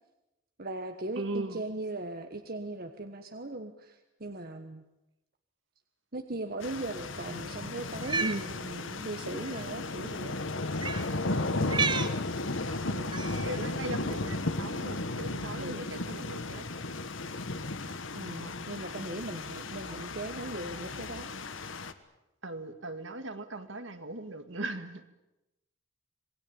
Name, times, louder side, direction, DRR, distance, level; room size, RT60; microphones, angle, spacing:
voice 1, 0.6-4.8 6.1-10.4 12.9-13.2 15.6-15.9 18.1-21.3, right 2 dB, 45° right, 6 dB, 1.4 m, -39 dB
voice 2, 1.2-1.6 8.2-8.5 11.3-12.1 12.6-12.9 13.4-16.6 18.4-18.6 22.4-25.0, right 2 dB, 65° right, 9 dB, 2.1 m, -38 dB
sound 1, 6.6-21.9, left 2 dB, 70° left, 1.5 m, -35 dB
Cat, 7.9-8.4 9.5-9.6 10.8-11.1 11.6-12.2 13.1-13.5, right 5 dB, 20° right, 1.1 m, -31 dB
27.0 x 20.5 x 8.8 m, 0.94 s
head